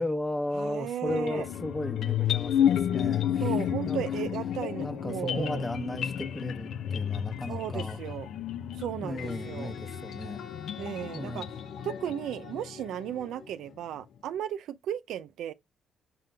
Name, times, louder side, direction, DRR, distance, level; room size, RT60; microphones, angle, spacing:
voice 1, 0.0-3.5 3.8-4.3 4.8-8.0 9.0-10.5 11.1-11.5, left 1 dB, 15° left, 1.0 m, -35 dB
voice 2, 0.5-1.5 3.4-5.7 7.5-8.3 8.7-9.7 10.8-11.5 11.8-15.5, right 10 dB, 80° right, 0.5 m, -35 dB
sound 1, 1.1-13.2, left 9 dB, 70° left, 0.7 m, -31 dB
Wind instrument woodwind instrument, 9.2-13.5, left 5 dB, 55° left, 1.8 m, -47 dB
7.5 x 3.8 x 3.3 m
cardioid pair, 90°, 0 cm